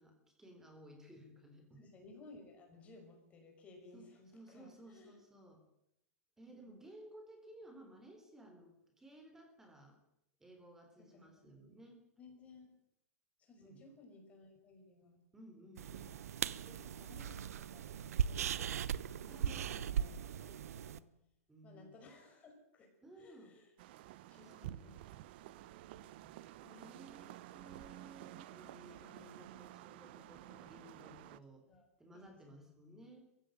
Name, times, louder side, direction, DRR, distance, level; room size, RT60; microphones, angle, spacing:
voice 1, 0.0-1.8 3.9-5.6 6.4-10.0 10.4-12.0 13.6-13.8 15.3-16.1 19.3-19.8 21.5-21.9 23.0-23.6 24.3-25.0 26.2-26.3 26.6-31.7 32.0-33.3, right 1 dB, 5° right, 5 dB, 3.7 m, -57 dB
voice 2, 1.8-5.2 6.5-6.8 11.0-11.7 12.2-12.7 13.4-15.2 16.7-21.1 21.6-23.7 24.3-25.1 25.4-26.2 27.2-27.3 31.7-31.9 32.1-32.7, left 2 dB, 15° left, 3 dB, 5.5 m, -59 dB
sound 1, 15.8-21.0, right 9 dB, 85° right, 0.9 m, -38 dB
sound 2, 23.8-31.4, right 14 dB, 45° right, 0.8 m, -52 dB
21.0 x 16.0 x 9.2 m, 0.81 s
supercardioid pair, 165°, 8 cm